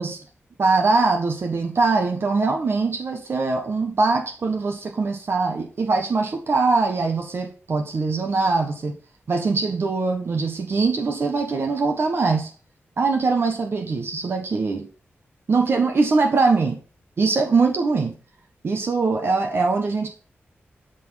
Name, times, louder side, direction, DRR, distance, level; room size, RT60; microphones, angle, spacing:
voice 1, 0.6-8.9 9.3-12.5 13.0-14.8 15.5-16.8 17.2-18.1 18.6-20.1, right 4 dB, 60° right, 1.4 m, -22 dB
13.0 x 4.3 x 5.8 m
wide cardioid pair, 105°, 5 cm